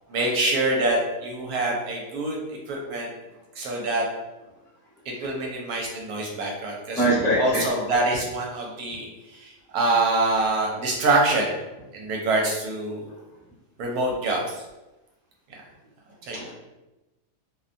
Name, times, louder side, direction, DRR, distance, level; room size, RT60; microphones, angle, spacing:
voice 1, 0.1-2.4 2.7-3.1 3.5-4.1 5.1-7.0 7.4-11.5 11.9-13.0 13.8-14.4 16.2-16.5, right 2 dB, 75° right, -1 dB, 1.0 m, -25 dB
voice 2, 7.0-7.7 16.3-16.5, right 1 dB, 5° left, -9 dB, 0.4 m, -22 dB
2.6 x 2.1 x 2.5 m, 1.0 s
omnidirectional pair, 1.7 m